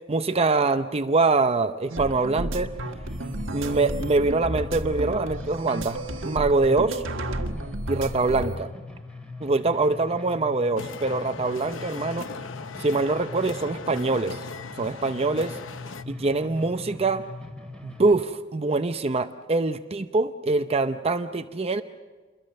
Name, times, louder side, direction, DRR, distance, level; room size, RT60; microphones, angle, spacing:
voice 1, 0.1-2.7 3.5-7.0 7.9-8.7 9.4-12.3 12.8-14.4 14.8-15.6 16.1-17.2 17.8-21.8, right 3 dB, 30° right, 9 dB, 0.7 m, -24 dB
sound 1, 1.9-8.6, right 1 dB, 75° right, 1.6 m, -32 dB
sound 2, 2.1-18.1, left 3 dB, 5° left, 2.4 m, -41 dB
sound 3, 10.8-16.0, left 4 dB, 70° left, 0.9 m, -39 dB
28.5 x 22.0 x 6.6 m, 1.3 s
head